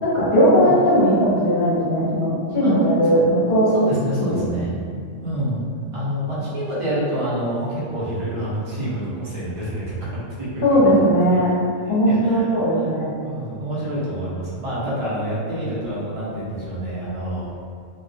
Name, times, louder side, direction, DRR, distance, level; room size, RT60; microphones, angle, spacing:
voice 1, 0.0-3.7 4.3-4.4 10.6-11.5 11.9-13.1, equal, 50° left, -7 dB, 0.8 m, -18 dB
voice 2, 3.7-4.7 5.2-5.6 5.9-10.0 10.4-10.8 11.9-12.9 13.2-17.6, equal, 50° right, -8 dB, 0.4 m, -27 dB
2.3 x 2.1 x 2.7 m, 2.3 s
omnidirectional pair, 1.4 m